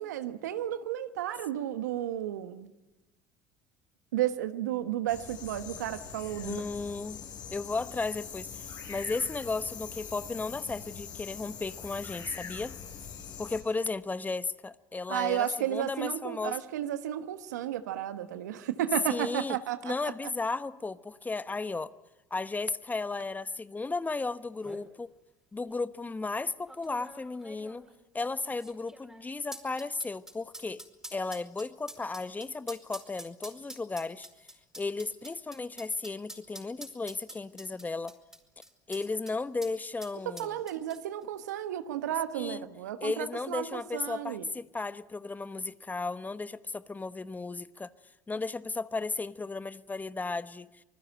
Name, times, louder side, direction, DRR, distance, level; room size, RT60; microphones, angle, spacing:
voice 1, 0.0-2.7 4.1-6.6 15.1-20.1 40.2-44.5, right 12 dB, 80° right, 1.3 m, -33 dB
sound 1, 5.1-13.6, left 7 dB, 50° left, 6.4 m, -43 dB
voice 2, 6.4-7.2 7.5-12.8 13.4-16.6 19.1-19.6 19.8-21.9 22.3-25.1 25.5-27.9 28.1-30.8 31.1-34.3 34.8-38.1 38.9-40.6 42.3-42.7 43.0-47.9 48.3-50.7, left 3 dB, 20° left, 1.0 m, -34 dB
sound 2, 24.1-24.2 24.4-24.9 25.6-25.7 26.7-39.4 39.6-39.7 40.0-41.2 41.5-41.6, right 1 dB, 5° right, 4.7 m, -47 dB
26.0 x 20.5 x 8.9 m
hypercardioid pair, 70°, 9 cm